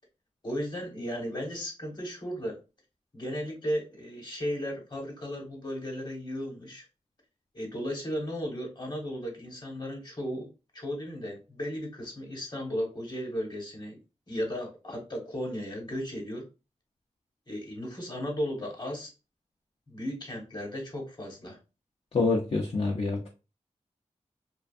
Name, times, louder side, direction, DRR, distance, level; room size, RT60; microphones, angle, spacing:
voice 1, 0.4-2.6 3.1-6.8 7.5-10.5 10.7-13.9 14.3-16.5 17.5-19.1 19.9-21.6, equal, 35° left, 0 dB, 1.1 m, -35 dB
voice 2, 22.1-23.3, left 3 dB, 50° left, -1 dB, 0.5 m, -26 dB
2.5 x 2.2 x 2.4 m, 0.29 s
cardioid pair, 60°, 13 cm